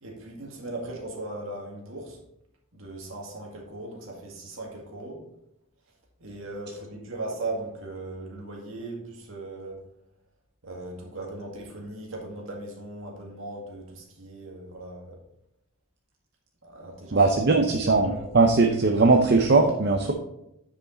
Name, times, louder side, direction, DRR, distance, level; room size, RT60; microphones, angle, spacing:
voice 1, 0.0-2.2 2.7-5.2 6.2-9.8 10.6-15.2 16.6-17.2 17.8-18.2, right 2 dB, 65° right, 0 dB, 2.0 m, -38 dB
voice 2, 17.1-20.1, right 3 dB, 50° right, 3 dB, 0.6 m, -20 dB
9.6 x 5.1 x 3.9 m, 0.81 s
head